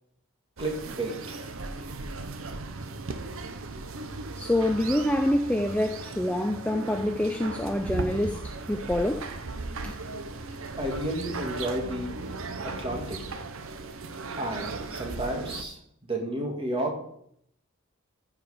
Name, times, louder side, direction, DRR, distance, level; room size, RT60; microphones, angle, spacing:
voice 1, 0.6-1.5 1.8-2.0 10.8-12.1 12.6-13.2 14.3-17.0, right 1 dB, 25° right, 1 dB, 2.0 m, -32 dB
sound 1, 0.6-15.6, right 3 dB, 65° right, 0.8 m, -37 dB
voice 2, 4.4-9.3 9.8-9.9, left 1 dB, 5° left, 5 dB, 0.4 m, -26 dB
14.5 x 4.9 x 5.0 m, 0.69 s
head